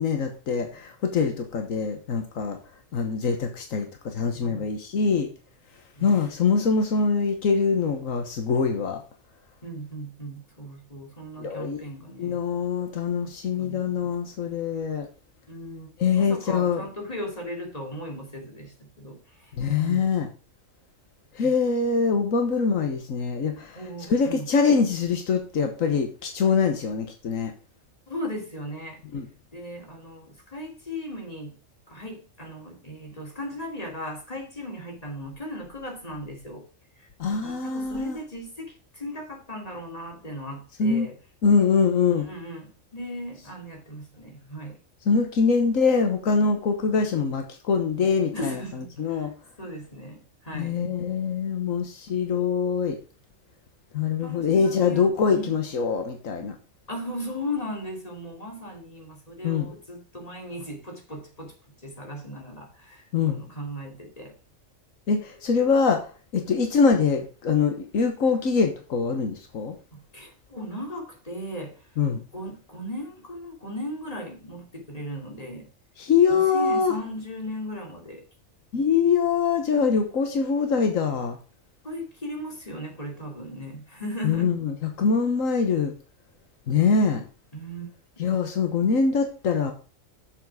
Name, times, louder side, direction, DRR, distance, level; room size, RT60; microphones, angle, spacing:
voice 1, 0.0-2.6 2.9-5.3 6.0-9.0 11.4-11.8 12.2-15.1 16.0-16.8 19.6-20.3 21.3-23.8 24.1-27.5 29.1-29.3 37.2-38.2 40.8-41.1 41.4-42.3 45.0-49.3 50.5-53.0 53.9-56.6 59.4-59.7 63.1-63.4 65.1-66.0 66.3-69.7 72.0-72.2 76.0-76.9 78.7-81.4 84.2-85.9 86.7-87.2 88.2-89.7, left 5 dB, 85° left, 1.6 m, -24 dB
voice 2, 4.4-4.7 5.9-6.3 9.6-12.4 13.2-13.3 13.6-14.1 15.5-20.0 21.4-21.5 23.7-24.5 28.1-29.0 29.5-31.6 31.9-36.6 37.0-41.1 42.1-44.8 48.3-49.3 49.6-50.8 54.2-55.5 56.9-61.5 61.8-64.3 69.9-71.8 72.3-75.7 76.3-78.2 78.7-78.8 81.8-84.5 87.5-87.9, equal, 30° left, 2.8 m, -37 dB
7.2 x 7.1 x 4.9 m
omnidirectional pair, 1.3 m